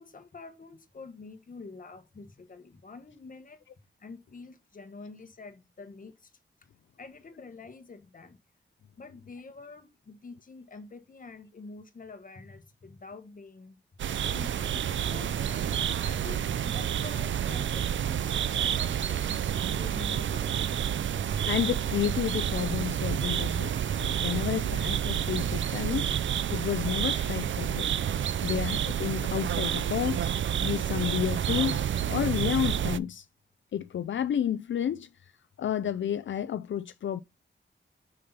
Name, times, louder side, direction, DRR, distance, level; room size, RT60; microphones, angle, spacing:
voice 1, 0.0-3.6 4.0-6.3 7.0-8.4 9.0-13.8 14.3-19.2 19.5-20.5, left 4 dB, 45° left, 1.3 m, -47 dB
sound 1, 14.0-33.0, right 9 dB, 75° right, 0.4 m, -29 dB
voice 2, 21.5-26.2 26.5-27.9 28.4-30.3 30.6-33.3 33.7-35.3 35.6-37.2, left 9 dB, 75° left, 0.4 m, -31 dB
6.6 x 5.5 x 5.4 m
wide cardioid pair, 135°, 20 cm